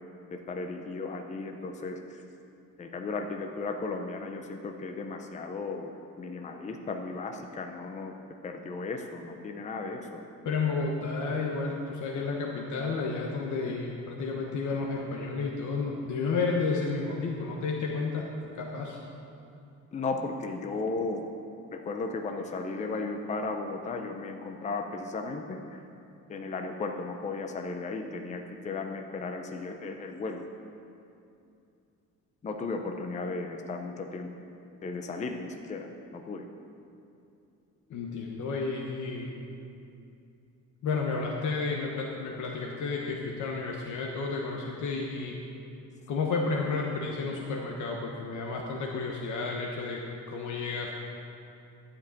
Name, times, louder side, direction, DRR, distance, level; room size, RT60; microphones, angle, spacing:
voice 1, 0.3-2.2 2.8-8.1 8.4-10.2 19.9-21.3 21.7-25.9 26.3-30.5 32.4-34.3 34.8-36.5, left 3 dB, 20° left, 4 dB, 0.6 m, -35 dB
voice 2, 10.4-18.3 18.5-19.0 37.9-39.3 40.8-45.4 46.1-50.0 50.3-50.9, left 4 dB, 65° left, -1 dB, 1.2 m, -31 dB
12.0 x 5.2 x 8.5 m, 2.6 s
cardioid pair, 145°, 32 cm